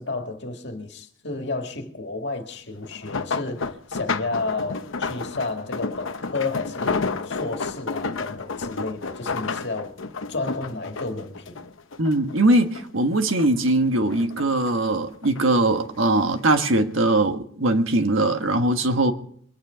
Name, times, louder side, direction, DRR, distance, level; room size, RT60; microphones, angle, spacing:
voice 1, 0.0-9.9 10.3-11.6, left 3 dB, 60° left, 2.0 m, -31 dB
sound 1, 2.8-12.4 12.7-13.7 14.1-15.4 16.2-16.5 16.9-17.0, left 4 dB, 85° left, 0.8 m, -31 dB
voice 2, 12.0-19.1, right 2 dB, 85° right, 1.5 m, -21 dB
23.0 x 9.5 x 5.1 m
head